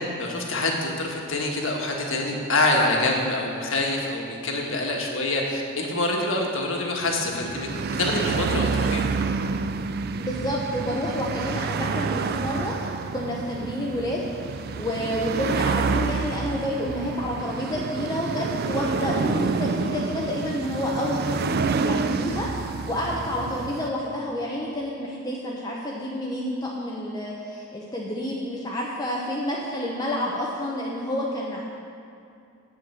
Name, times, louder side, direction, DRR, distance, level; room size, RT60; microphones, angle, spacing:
voice 1, 0.2-7.7 8.0-9.1, left 2 dB, 60° left, 0 dB, 1.5 m, -26 dB
sound 1, 7.1-23.9, right 4 dB, 45° right, 0.3 m, -28 dB
voice 2, 10.2-31.6, left 1 dB, 15° left, -4 dB, 0.8 m, -29 dB
7.5 x 7.3 x 8.3 m, 2.5 s
head